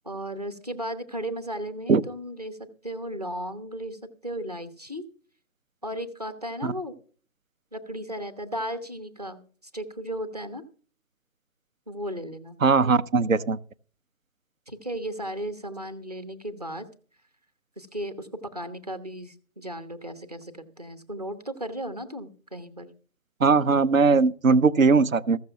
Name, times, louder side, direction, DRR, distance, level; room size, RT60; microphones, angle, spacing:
voice 1, 0.0-2.6 2.8-5.1 5.8-6.9 7.7-9.4 9.7-10.6 11.9-12.6 14.7-16.9 17.8-22.9, equal, 30° right, 1.0 m, -35 dB
voice 2, 12.6-13.6 23.4-25.4, right 4 dB, 70° right, 0.8 m, -20 dB
14.5 x 6.7 x 6.8 m
hypercardioid pair, 180°, 42 cm